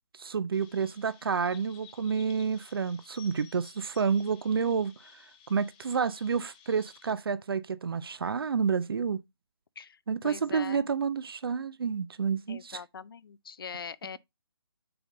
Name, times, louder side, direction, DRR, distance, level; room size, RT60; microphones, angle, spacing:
voice 1, 0.2-4.9 5.5-9.2 10.1-12.8, right 6 dB, 60° right, 0.5 m, -29 dB
Chirp tweet, 0.5-7.1, left 8 dB, 20° left, 0.9 m, -55 dB
voice 2, 9.8-10.9 12.5-14.2, left 6 dB, 60° left, 0.5 m, -42 dB
6.9 x 3.8 x 3.7 m
figure-of-eight pair, 155°, 14 cm